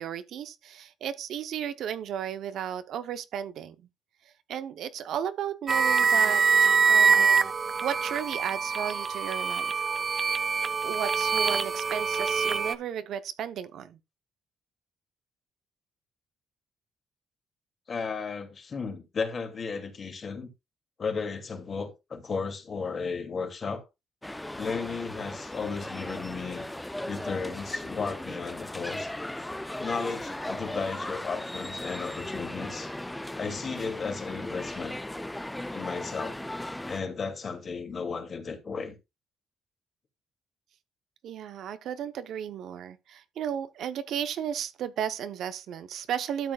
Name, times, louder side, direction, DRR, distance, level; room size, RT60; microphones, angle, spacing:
voice 1, 0.0-3.7 4.5-7.5 7.8-9.8 10.8-14.0 41.2-46.5, right 9 dB, 75° right, 0.8 m, -34 dB
sound 1, 5.7-12.8, right 5 dB, 45° right, 0.7 m, -24 dB
voice 2, 17.9-20.5 21.0-23.8 24.6-26.7 27.0-29.1 29.8-32.9 33.3-34.9 35.7-36.4 36.9-38.9, left 5 dB, 45° left, 2.4 m, -34 dB
sound 2, 24.2-37.0, left 1 dB, 10° left, 0.4 m, -37 dB
12.5 x 7.5 x 2.3 m
cardioid pair, 90°, 0 cm